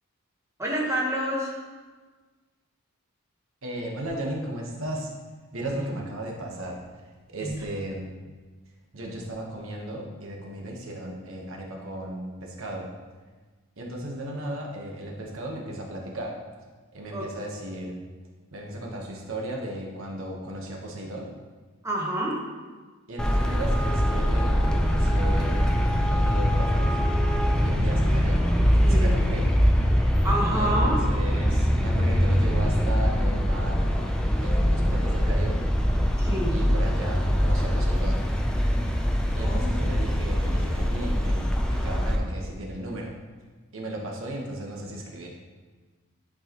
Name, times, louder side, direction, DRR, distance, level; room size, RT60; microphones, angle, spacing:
voice 1, 0.6-1.6 7.4-7.5 17.1-17.3 21.8-22.4 28.8-29.2 30.2-31.1 36.2-36.6 39.3-39.9, right 1 dB, 15° right, -3 dB, 1.2 m, -28 dB
voice 2, 3.6-5.1 5.5-6.8 7.3-8.2 8.9-12.9 13.8-16.4 16.9-18.0 18.5-21.3 23.1-25.7 26.1-27.0 27.6-28.4 28.8-29.5 30.5-34.0 34.4-35.6 36.5-38.3 39.3-41.4 41.7-43.2 43.7-45.3, right 1 dB, 70° right, -1 dB, 1.2 m, -35 dB
Traffic noise roadway noise, 23.2-42.2, equal, 5° left, 0.5 m, -23 dB
11.0 x 4.7 x 3.0 m, 1.4 s
head